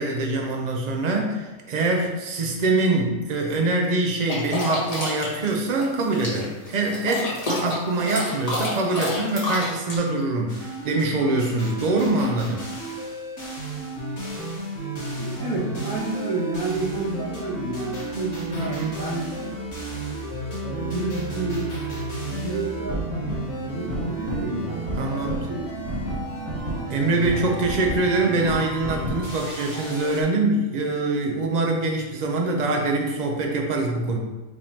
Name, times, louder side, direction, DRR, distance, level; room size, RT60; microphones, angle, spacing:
voice 1, 0.0-12.6 18.6-19.0 25.0-25.5 26.9-34.2, right 2 dB, 50° right, 1 dB, 0.5 m, -24 dB
sound 1, 4.3-10.0, left 1 dB, 30° left, 1.2 m, -29 dB
sound 2, 10.5-30.2, right 1 dB, 50° left, 1.5 m, -32 dB
voice 2, 14.9-19.3 20.6-21.8 22.2-25.6, right 2 dB, 90° right, -9 dB, 1.5 m, -30 dB
5.1 x 3.5 x 2.8 m, 1.2 s
omnidirectional pair, 1.5 m